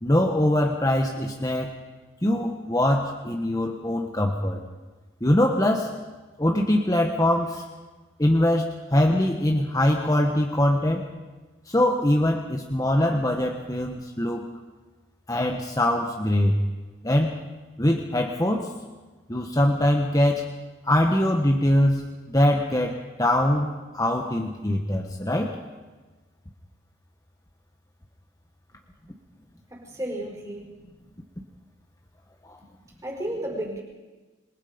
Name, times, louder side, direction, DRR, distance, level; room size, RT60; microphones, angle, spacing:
voice 1, 0.0-1.7 2.2-4.6 5.2-5.9 6.4-7.6 8.2-11.0 11.7-14.5 15.3-16.6 17.0-17.4 17.8-18.7 19.3-20.4 20.8-25.6 32.4-32.6, left 1 dB, 15° left, 2 dB, 1.3 m, -23 dB
voice 2, 29.7-30.8 32.6-32.7 33.0-33.8, right 1 dB, 15° right, -2 dB, 4.9 m, -33 dB
27.0 x 22.0 x 5.2 m, 1.3 s
head